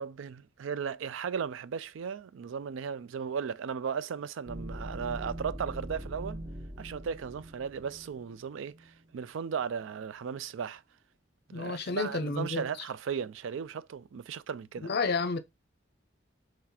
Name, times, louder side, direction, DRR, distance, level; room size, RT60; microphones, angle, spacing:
voice 1, 0.0-6.4 6.8-10.8 11.5-14.9, right 7 dB, 75° right, 0.4 m, -36 dB
sound 1, 4.5-9.0, equal, 20° right, 0.7 m, -42 dB
voice 2, 11.5-12.7 14.8-15.4, left 4 dB, 55° left, 0.5 m, -30 dB
3.9 x 3.2 x 2.8 m
head